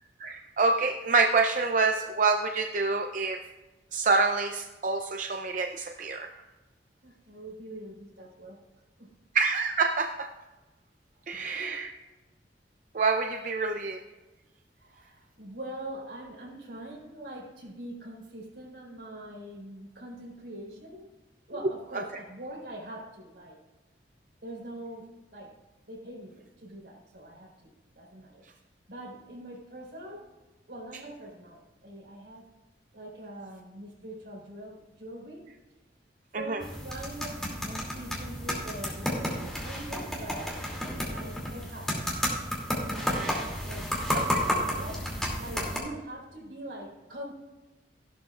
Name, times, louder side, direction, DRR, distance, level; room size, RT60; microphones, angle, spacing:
voice 1, 0.2-3.4 3.9-6.3 9.3-10.3 11.3-11.9 12.9-14.0 36.3-36.6 43.1-43.5 44.1-44.4, right 4 dB, 45° right, 5 dB, 0.5 m, -27 dB
voice 2, 7.0-8.6 9.0-9.1 11.3-11.7 14.8-21.1 21.5-23.6 24.4-25.5 25.9-27.7 28.0-28.4 28.9-30.2 30.7-32.4 32.9-35.4 36.4-42.1 42.8-43.2 43.6-47.3, right 1 dB, 75° right, -2 dB, 4.0 m, -43 dB
sound 1, 36.6-45.8, equal, 5° left, 2.5 m, -32 dB
14.5 x 12.0 x 2.4 m, 1.1 s
head